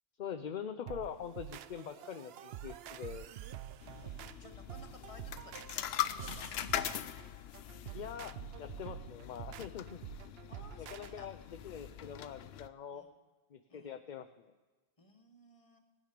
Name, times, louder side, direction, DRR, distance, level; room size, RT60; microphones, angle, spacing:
voice 1, 0.2-3.3 7.9-10.0 10.8-13.0 13.5-14.5, left 8 dB, 55° left, 8 dB, 0.7 m, -44 dB
sound 1, 0.9-11.1, right 11 dB, 80° right, 0.8 m, -47 dB
sound 2, 3.8-12.7, left 11 dB, 80° left, 0.8 m, -42 dB
voice 2, 3.8-6.5 10.5-11.3 12.0-12.2 12.9-13.1 13.7-13.9 15.0-15.8, left 3 dB, 35° left, 4 dB, 1.5 m, -58 dB
18.5 x 9.6 x 5.1 m, 1.3 s
omnidirectional pair, 1.0 m